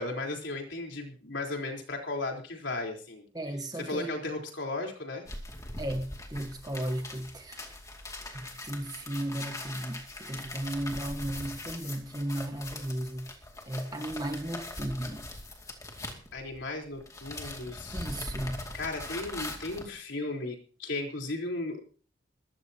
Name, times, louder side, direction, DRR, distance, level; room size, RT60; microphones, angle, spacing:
voice 1, 0.0-3.3 3.8-5.2 16.3-18.0 18.7-21.8, left 2 dB, 65° left, 4.0 m, -35 dB
voice 2, 3.3-4.1 5.8-7.7 8.3-13.3 13.7-15.2 17.9-18.6, right 1 dB, 20° right, 1.5 m, -35 dB
sound 1, 5.3-16.7 17.0-19.9, left 2 dB, 15° left, 2.4 m, -41 dB
22.5 x 13.5 x 2.9 m
head